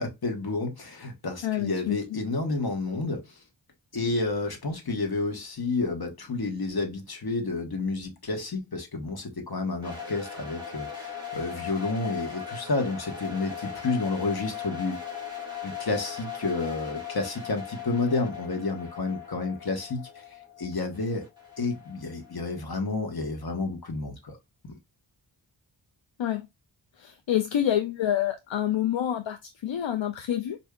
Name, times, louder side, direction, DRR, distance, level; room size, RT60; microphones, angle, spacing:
voice 1, 0.0-3.2 3.9-15.0 15.6-20.0 20.6-21.2 21.6-24.4 24.7-24.8, left 3 dB, 55° left, 1.1 m, -30 dB
voice 2, 1.4-2.2 26.2-26.4 27.0-30.6, left 11 dB, 75° left, 0.5 m, -27 dB
sound 1, 9.8-22.7, left 8 dB, 10° right, 2.2 m, -39 dB
4.7 x 2.6 x 2.2 m
wide cardioid pair, 80°, 46 cm